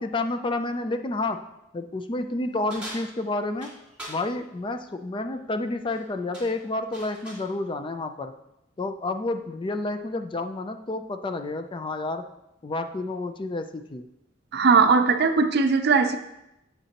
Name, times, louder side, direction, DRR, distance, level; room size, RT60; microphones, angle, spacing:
voice 1, 0.0-1.4 1.7-3.7 4.1-8.3 8.8-12.2 12.6-14.0, left 2 dB, 25° left, 8 dB, 0.4 m, -30 dB
sound 1, 2.7-4.2 5.7-6.0 6.3-7.5, right 1 dB, 5° right, 2.2 m, -41 dB
voice 2, 14.5-16.2, right 5 dB, 55° right, 8 dB, 0.5 m, -19 dB
8.0 x 7.3 x 2.9 m, 0.87 s
head